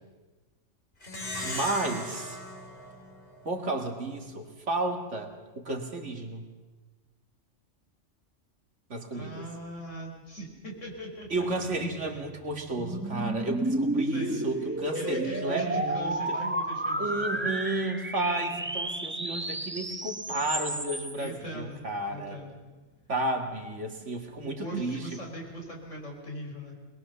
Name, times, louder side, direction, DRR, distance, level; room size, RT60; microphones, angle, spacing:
Plucked string instrument, 1.0-3.8, left 1 dB, 40° left, 2.7 m, -38 dB
voice 1, 1.4-2.4 3.4-6.5 8.9-9.5 11.3-16.4 17.0-22.4 23.1-25.0, right 2 dB, 70° right, 4 dB, 2.6 m, -32 dB
voice 2, 9.1-11.4 12.0-12.3 14.0-17.5 21.2-22.6 24.4-26.8, right 1 dB, 75° left, 0 dB, 5.1 m, -40 dB
sound 1, 11.6-21.3, right 1 dB, 10° right, 0.8 m, -32 dB
22.0 x 21.5 x 6.9 m, 1.3 s
omnidirectional pair, 1.3 m